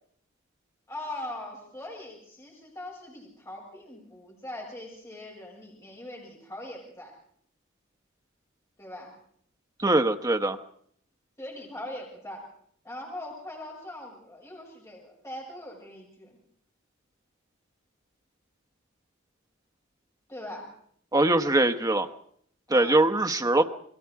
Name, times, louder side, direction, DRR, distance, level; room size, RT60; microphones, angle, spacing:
voice 1, 0.9-7.1 8.8-9.1 11.4-12.4 12.8-16.4 20.3-20.7 22.7-23.0, left 1 dB, 15° left, -2 dB, 7.1 m, -41 dB
voice 2, 9.8-10.6 21.1-22.1 22.7-23.6, right 2 dB, 20° right, 7 dB, 1.1 m, -22 dB
28.0 x 22.0 x 4.8 m, 0.62 s
head